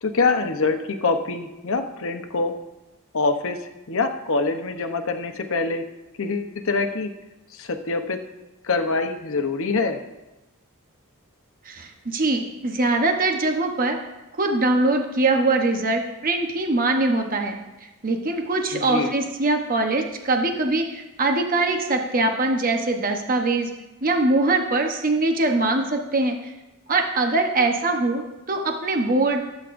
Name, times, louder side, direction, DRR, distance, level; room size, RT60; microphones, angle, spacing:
voice 1, 0.0-2.5 3.1-3.6 3.9-5.8 6.2-7.1 7.5-8.2 8.6-10.0 18.7-19.1, left 3 dB, 65° left, 6 dB, 0.9 m, -24 dB
voice 2, 11.6-14.0 14.3-17.5 18.0-23.7 24.0-26.5 26.9-29.4, right 2 dB, 40° right, 4 dB, 0.9 m, -22 dB
19.0 x 8.1 x 2.6 m, 1.0 s
head